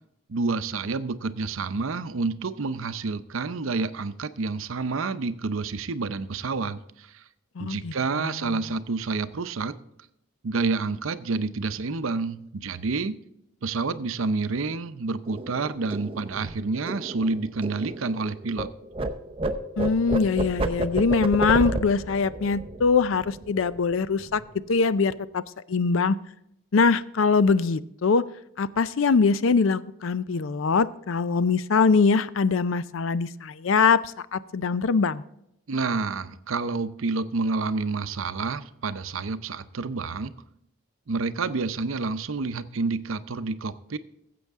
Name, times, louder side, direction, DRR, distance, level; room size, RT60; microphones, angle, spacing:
voice 1, 0.3-7.2 7.6-9.8 10.4-13.2 13.6-18.7 35.7-40.3 41.1-44.0, right 3 dB, 75° right, 13 dB, 0.6 m, -29 dB
voice 2, 7.6-8.6 19.8-24.4 24.7-25.4 25.7-26.2 26.7-28.2 28.6-34.0 34.3-35.2, left 4 dB, 70° left, 16 dB, 0.5 m, -23 dB
sound 1, 15.3-18.7 18.9-23.9 24.2-24.5 24.7-25.3, right 2 dB, 25° right, 0.6 m, -31 dB
15.0 x 7.8 x 3.6 m, 0.78 s
head